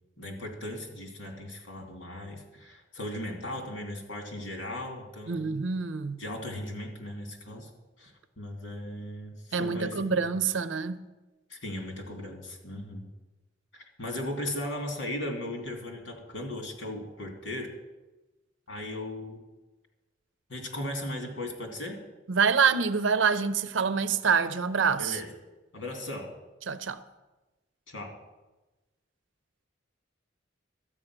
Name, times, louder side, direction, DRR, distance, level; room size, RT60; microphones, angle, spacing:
voice 1, 0.2-5.6 6.2-7.7 8.0-10.3 11.5-13.1 13.7-17.7 18.7-19.4 20.5-22.0 25.0-25.3 25.7-26.3 27.9-28.1, left 1 dB, 75° left, 2.7 m, -37 dB
voice 2, 5.3-6.2 9.5-11.0 22.3-25.2 26.7-27.0, right 5 dB, 75° right, 0.6 m, -26 dB
12.5 x 8.9 x 6.0 m
head